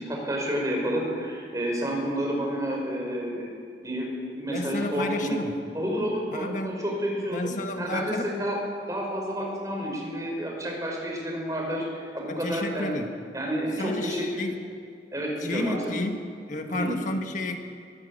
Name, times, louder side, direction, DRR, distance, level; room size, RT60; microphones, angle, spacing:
voice 1, 0.0-3.5 3.8-4.1 4.3-5.4 5.7-7.5 7.8-8.6 8.9-13.0 13.3-14.4 15.1-15.9 16.7-16.9, equal, 20° right, -1 dB, 5.3 m, -30 dB
voice 2, 4.5-5.6 6.3-6.8 7.3-8.3 12.3-13.2 13.8-14.6 15.4-17.6, left 2 dB, 45° left, 5 dB, 1.5 m, -32 dB
22.0 x 14.5 x 8.5 m, 2.2 s
head